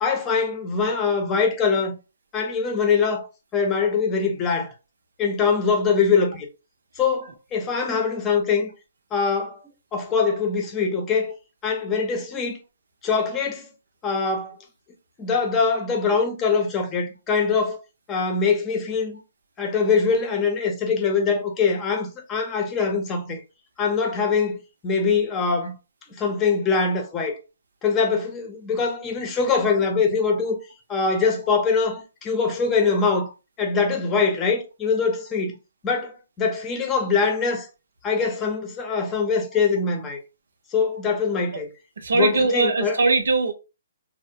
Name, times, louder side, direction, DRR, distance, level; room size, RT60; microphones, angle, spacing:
voice 1, 0.0-2.0 2.3-3.3 3.5-4.7 5.2-6.5 7.0-8.7 9.1-9.6 9.9-11.3 11.6-12.6 13.0-13.7 14.0-14.6 15.2-17.8 18.1-19.2 19.6-23.4 23.8-25.8 26.1-27.4 27.8-30.6 30.9-33.3 33.6-35.6 35.8-37.7 38.0-40.2 40.7-41.7 42.1-43.0, left 5 dB, 20° left, 0.7 m, -23 dB
voice 2, 42.0-43.5, right 3 dB, 80° right, 0.7 m, -21 dB
3.3 x 2.1 x 2.7 m
hypercardioid pair, 150°, 0 cm